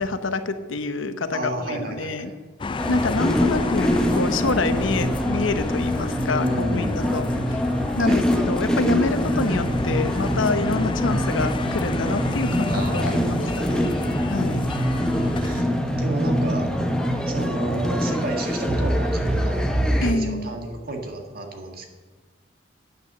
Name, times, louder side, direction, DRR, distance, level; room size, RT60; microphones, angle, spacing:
voice 1, 0.0-2.3 2.9-7.3 8.0-13.9 14.3-14.7 20.0-20.5, left 3 dB, 80° left, 10 dB, 0.9 m, -27 dB
voice 2, 1.3-2.3 6.3-7.3 8.0-8.3 12.6-13.9 15.0-15.7 16.0-16.7 17.3-19.6 20.0-21.9, right 1 dB, 50° right, 3 dB, 1.7 m, -31 dB
sound 1, 2.6-15.6, left 3 dB, 25° left, 0.3 m, -31 dB
sound 2, 2.8-20.1, equal, 5° left, 0.9 m, -24 dB
9.0 x 9.0 x 6.7 m, 1.3 s
head